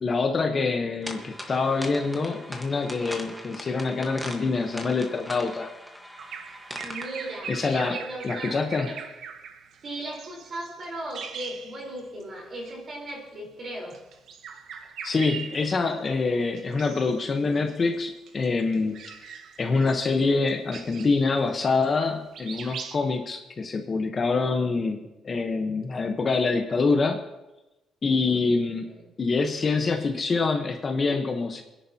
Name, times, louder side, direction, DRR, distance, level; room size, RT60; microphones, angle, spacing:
voice 1, 0.0-5.7 7.5-8.0 8.2-8.9 15.0-19.0 19.6-25.0 25.2-27.2 28.0-28.8 29.2-31.6, left 4 dB, 30° left, 4 dB, 1.0 m, -25 dB
sound 1, 1.0-7.4, equal, 5° right, 1.4 m, -41 dB
Bird vocalization bird call bird song, 6.2-12.2 12.6-12.8 13.8-16.1 16.6-17.2 17.6-22.1 22.3-23.0, right 7 dB, 70° right, 1.1 m, -41 dB
voice 2, 6.8-8.6 8.9-9.0 9.8-14.0 28.3-29.1, right 1 dB, 40° right, -1 dB, 4.2 m, -37 dB
28.5 x 10.5 x 2.9 m, 1.0 s
cardioid pair, 160°, 0 cm